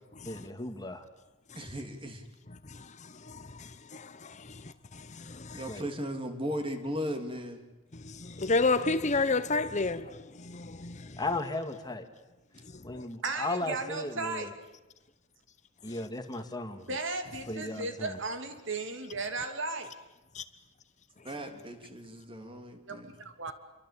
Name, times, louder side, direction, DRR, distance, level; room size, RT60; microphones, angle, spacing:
voice 1, 0.3-1.1 5.7-5.9 11.2-12.1 12.8-14.5 15.8-16.9 17.5-18.2, left 2 dB, 20° left, 2.1 m, -36 dB
voice 2, 1.6-2.2 5.5-7.6 21.2-23.1, equal, 25° right, 3.2 m, -37 dB
voice 3, 2.7-4.6 4.9-5.6 7.9-11.2 12.9-13.0 20.3-20.4, left 3 dB, 35° left, 1.0 m, -31 dB
voice 4, 13.2-14.5 16.9-19.9 22.9-23.5, right 3 dB, 60° right, 3.0 m, -35 dB
28.5 x 24.0 x 8.6 m
head